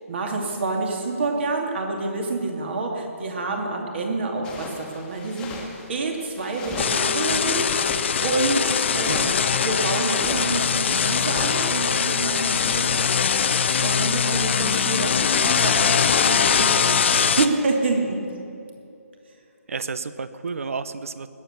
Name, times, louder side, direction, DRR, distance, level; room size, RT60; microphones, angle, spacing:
voice 1, 0.1-5.5 5.9-9.1 9.6-18.2, right 3 dB, 45° right, 2 dB, 2.6 m, -28 dB
sound 1, 4.4-11.7, left 3 dB, 10° left, 1.5 m, -37 dB
sound 2, 6.8-17.5, left 7 dB, 50° left, 0.7 m, -22 dB
voice 2, 19.7-21.3, right 5 dB, 60° right, 14 dB, 0.8 m, -31 dB
20.0 x 8.1 x 6.8 m, 2.6 s
figure-of-eight pair, 150°, 8 cm